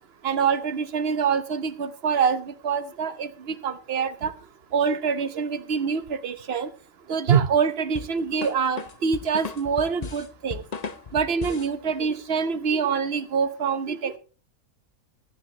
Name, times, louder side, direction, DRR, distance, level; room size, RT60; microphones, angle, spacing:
voice 1, 0.2-4.3 4.7-6.7 7.1-10.6 11.1-14.2, right 6 dB, 50° right, 11 dB, 1.0 m, -25 dB
sound 1, 7.9-11.8, left 5 dB, 40° left, 0.6 m, -36 dB
16.0 x 9.5 x 2.9 m, 0.36 s
omnidirectional pair, 1.5 m